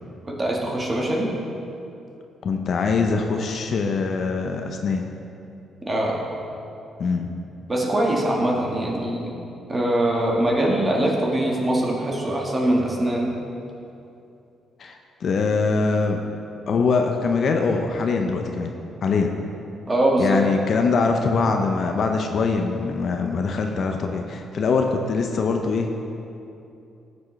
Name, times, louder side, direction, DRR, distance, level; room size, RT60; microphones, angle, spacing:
voice 1, 0.4-1.3 5.9-6.2 7.7-9.3 9.7-13.3 19.9-20.4, right 1 dB, 30° right, -2 dB, 1.5 m, -22 dB
voice 2, 2.4-5.1 7.0-7.3 14.8-16.2 16.7-18.7 19.0-19.3 20.2-25.9, left 4 dB, 55° left, 3 dB, 0.6 m, -23 dB
13.0 x 6.2 x 3.2 m, 2.7 s
cardioid pair, 90°, 0 cm